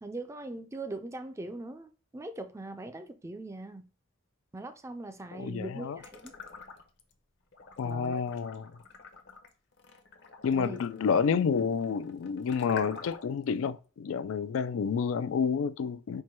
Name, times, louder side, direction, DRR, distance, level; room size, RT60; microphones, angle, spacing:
voice 1, 0.0-3.9 4.5-6.3 7.8-8.2 10.5-10.8, right 2 dB, 15° right, 0.4 m, -41 dB
voice 2, 5.3-6.0 7.8-8.7 10.4-16.2, left 6 dB, 85° left, 0.3 m, -29 dB
sound 1, 6.0-7.1 7.5-13.4, left 5 dB, 60° left, 0.7 m, -48 dB
4.5 x 2.2 x 4.5 m
head